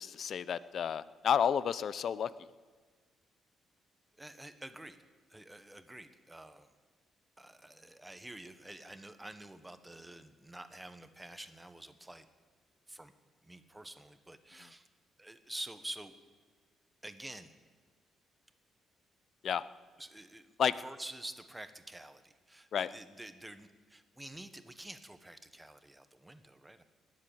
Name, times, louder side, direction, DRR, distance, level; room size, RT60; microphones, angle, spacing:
voice 1, 0.0-2.3 19.4-19.6 20.6-20.7 22.7-22.9, left 8 dB, 60° left, 17 dB, 0.6 m, -31 dB
voice 2, 4.2-5.0 5.3-6.7 7.4-12.3 12.9-13.1 13.4-14.9 15.2-16.2 17.0-17.5 20.0-26.8, right 1 dB, 10° right, 10 dB, 1.1 m, -48 dB
20.0 x 7.6 x 8.6 m, 1.5 s
cardioid pair, 90°, 0 cm